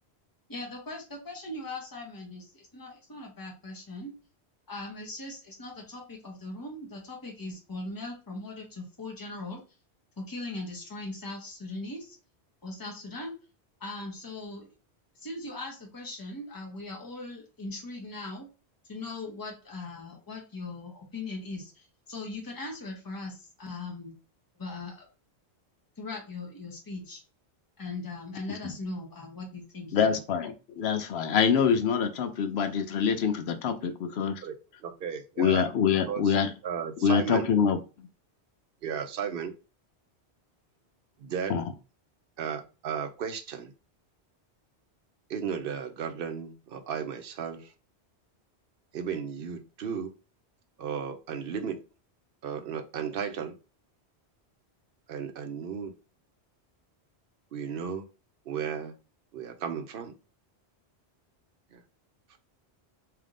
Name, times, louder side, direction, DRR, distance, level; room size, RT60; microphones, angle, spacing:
voice 1, 0.5-4.1 4.7-9.6 10.2-12.2 12.6-13.3 13.8-14.7 15.2-18.5 18.9-24.1 24.6-25.1 26.0-27.2 27.8-30.2, left 2 dB, 20° left, 1 dB, 1.0 m, -39 dB
voice 2, 29.9-34.4 35.4-36.5 37.0-37.8 41.5-41.6, left 7 dB, 75° left, 9 dB, 0.8 m, -25 dB
voice 3, 34.8-35.6 36.1-36.3 36.6-37.5 38.8-39.5 41.2-41.5 42.4-43.7 45.3-47.7 48.9-50.1 50.8-51.8 52.4-53.6 55.1-55.9 57.5-58.1 58.5-58.9 59.3-60.1 61.7-61.8 62.3-62.4, right 7 dB, 60° right, 8 dB, 0.8 m, -34 dB
3.5 x 2.8 x 3.7 m, 0.32 s
omnidirectional pair, 1.1 m